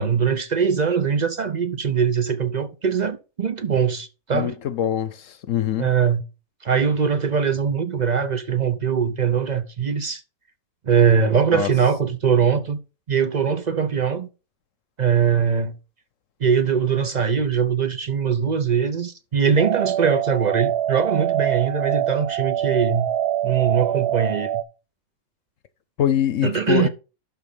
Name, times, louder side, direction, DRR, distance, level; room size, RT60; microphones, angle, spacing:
voice 1, 0.0-4.6 5.8-6.2 6.6-10.2 10.8-12.8 13.1-14.3 15.0-15.7 16.4-23.1 23.4-24.6 26.4-26.9, right 6 dB, 50° right, 0.5 m, -21 dB
voice 2, 4.3-5.9 11.5-11.7 26.0-26.9, left 10 dB, 65° left, 1.0 m, -23 dB
sound 1, 19.6-24.6, right 11 dB, 80° right, 1.3 m, -24 dB
11.5 x 3.9 x 5.4 m
omnidirectional pair, 1.6 m